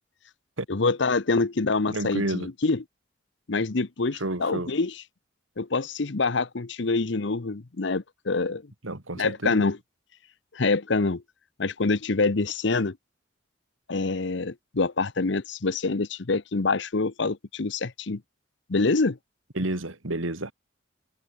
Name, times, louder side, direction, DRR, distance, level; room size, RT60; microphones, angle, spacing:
voice 1, 0.7-2.8 3.5-4.9 5.6-8.6 9.1-9.8 10.5-11.2 11.6-13.0 13.9-18.2 18.7-19.2, left 3 dB, 65° left, 0.8 m, -26 dB
voice 2, 1.9-2.5 4.2-4.7 8.8-9.6 19.5-20.5, right 2 dB, 85° right, 2.6 m, -30 dB
head